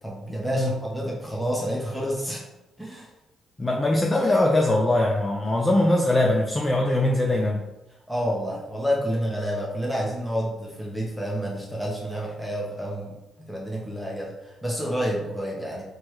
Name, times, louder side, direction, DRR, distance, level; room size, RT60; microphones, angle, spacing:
voice 1, 0.0-2.5 2.8-3.1 8.1-13.1 13.5-15.8, equal, ahead, -4 dB, 1.0 m, -29 dB
voice 2, 3.6-7.6, left 1 dB, 20° left, 0 dB, 0.5 m, -21 dB
4.2 x 3.2 x 3.1 m, 0.98 s
cardioid pair, 90°, 0 cm